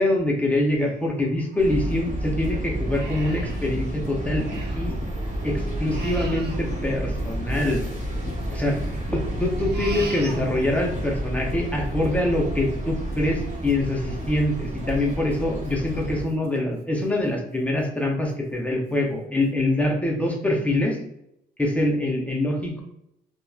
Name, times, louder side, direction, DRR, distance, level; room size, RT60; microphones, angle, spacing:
voice 1, 0.0-4.5 4.7-4.9 5.4-7.8 8.5-8.7 9.1-21.0 21.6-22.8, left 1 dB, 5° left, 0 dB, 0.7 m, -24 dB
Crying sobbing, 0.5-2.2 2.6-5.0 5.3-7.7 8.2-11.0 11.4-16.9 17.3-17.4 17.8-18.4 18.9-19.0 19.4-19.6, right 2 dB, 55° right, 0.6 m, -42 dB
sound 1, 1.6-16.2, right 1 dB, 35° right, 1.2 m, -30 dB
sound 2, 1.9-2.0 2.4-2.6 2.9-3.1 3.5-3.6 4.0-4.2 4.5-4.7 5.0-5.2 5.5-5.7 6.1-6.3 6.6-6.8 7.2-7.3 7.7-7.9 8.3-8.4 8.8-9.0 9.4-9.6 9.9-10.1 10.4-10.6 10.9-11.2 11.5-11.6 12.0-12.2 12.6-12.7 13.1-13.3 13.7-13.8 14.2-14.4 14.8-14.9 15.3-15.5 15.8-16.0 16.4-16.6, left 2 dB, 50° left, 0.6 m, -41 dB
2.8 x 2.1 x 2.3 m, 0.77 s
cardioid pair, 90°, 20 cm